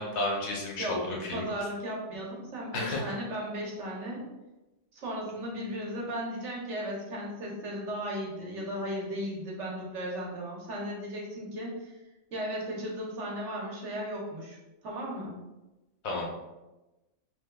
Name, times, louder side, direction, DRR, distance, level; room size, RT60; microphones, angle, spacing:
voice 1, 0.0-1.4 2.7-3.1 16.0-16.2, left 2 dB, 90° left, -1 dB, 1.2 m, -32 dB
voice 2, 0.8-4.3 4.9-12.0 12.3-14.6 14.8-15.4, equal, 60° right, -3 dB, 1.1 m, -36 dB
3.5 x 2.8 x 2.2 m, 1.0 s
omnidirectional pair, 1.4 m